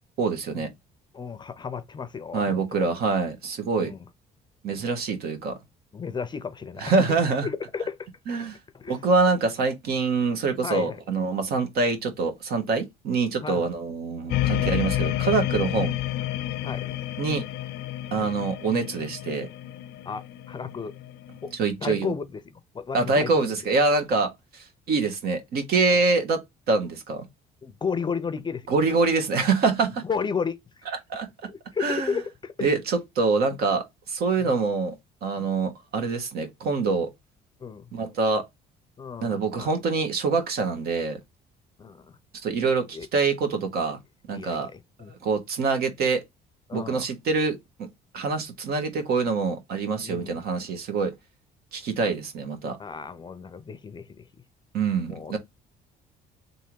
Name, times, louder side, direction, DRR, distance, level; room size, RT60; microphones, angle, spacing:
voice 1, 0.2-0.7 2.3-3.9 4.6-5.5 6.8-7.5 8.3-8.6 8.9-16.0 17.2-17.4 18.1-19.5 21.6-22.1 22.9-26.4 26.7-27.3 28.7-30.0 31.1-31.3 31.8-32.1 32.6-34.9 35.2-37.1 37.9-38.4 39.2-41.2 42.4-44.0 44.3-44.7 45.2-46.2 46.7-47.9 48.1-51.1 51.7-52.8 54.7-55.4, right 4 dB, 65° right, 1.4 m, -25 dB
voice 2, 1.1-2.8 3.7-4.1 4.7-4.9 5.9-8.1 8.7-9.0 10.6-11.0 13.4-13.7 14.6-14.8 16.6-16.9 18.1-18.4 20.1-20.9 21.4-21.5 21.8-23.5 27.6-28.7 30.0-30.8 31.4-32.7 34.4-34.5 35.4-35.5 37.6-37.9 39.0-39.7 41.8-42.2 42.9-43.1 44.3-45.1 46.7-47.1 50.0-50.4 52.8-54.3 55.1-55.4, left 5 dB, 25° left, 0.5 m, -33 dB
sound 1, 14.3-21.5, left 14 dB, 85° left, 0.5 m, -30 dB
3.5 x 2.7 x 4.5 m
cardioid pair, 110°, 17 cm